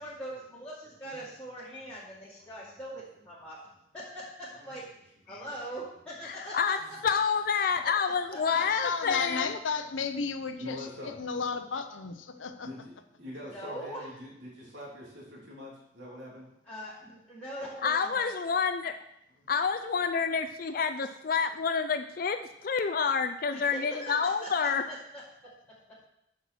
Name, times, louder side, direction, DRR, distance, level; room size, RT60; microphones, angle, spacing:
voice 1, 0.0-3.6 3.9-6.7 8.0-8.4 9.0-9.2 13.5-14.1 16.7-18.5 23.5-25.2, right 1 dB, 5° left, -9 dB, 1.9 m, -42 dB
voice 2, 5.3-5.7 6.9-7.0 10.6-11.2 12.6-16.5 19.3-19.5, left 1 dB, 75° right, -3 dB, 3.0 m, -44 dB
voice 3, 7.0-9.6 17.8-19.0 19.5-24.8, left 6 dB, 50° left, 7 dB, 0.4 m, -28 dB
voice 4, 8.5-12.9, left 5 dB, 90° left, 8 dB, 0.8 m, -34 dB
8.2 x 5.9 x 6.2 m, 0.80 s
head